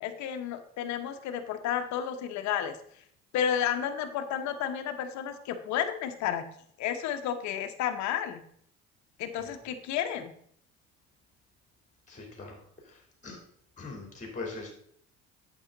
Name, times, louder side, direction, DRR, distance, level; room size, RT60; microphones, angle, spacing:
voice 1, 0.0-2.8 3.3-6.4 6.8-8.4 9.2-10.3, left 9 dB, 65° left, 8 dB, 1.1 m, -31 dB
voice 2, 12.1-12.6 12.8-13.4 13.8-14.7, left 3 dB, 25° left, 2 dB, 3.5 m, -41 dB
8.7 x 7.2 x 4.0 m, 0.65 s
hypercardioid pair, 65°, 30 cm